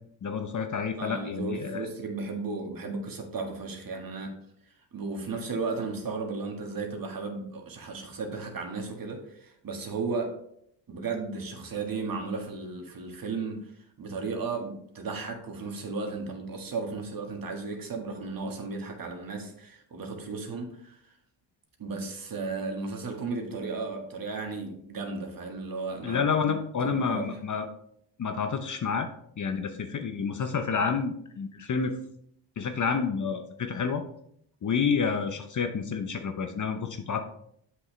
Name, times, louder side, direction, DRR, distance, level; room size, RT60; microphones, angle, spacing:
voice 1, 0.2-1.9 26.0-27.7 28.2-29.1 29.4-31.9 32.6-34.0 34.6-37.2, left 6 dB, 40° left, 7 dB, 0.8 m, -29 dB
voice 2, 1.0-4.3 4.9-10.3 10.9-13.7 14.0-21.0 21.8-26.5 26.8-27.4, right 4 dB, 45° right, 3 dB, 1.8 m, -35 dB
7.8 x 6.2 x 3.2 m, 0.70 s
cardioid pair, 80°, 48 cm